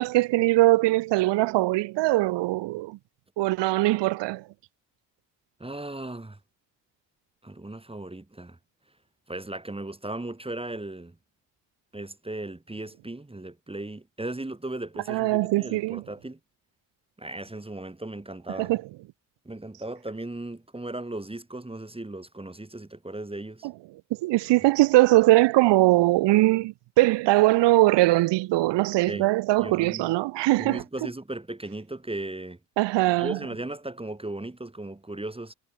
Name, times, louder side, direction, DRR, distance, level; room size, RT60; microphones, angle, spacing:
voice 1, 0.0-3.0 3.4-4.4 15.1-16.0 18.6-18.8 23.6-23.7 24.2-30.8 32.8-33.4, right 19 dB, 80° right, 0.8 m, -21 dB
voice 2, 5.6-6.4 7.4-8.6 9.3-11.2 11.9-16.4 17.2-18.7 19.5-23.7 29.1-29.3 29.6-30.1 30.6-32.6 33.2-35.5, right 2 dB, 15° right, 2.2 m, -36 dB
supercardioid pair, 60°, 42 cm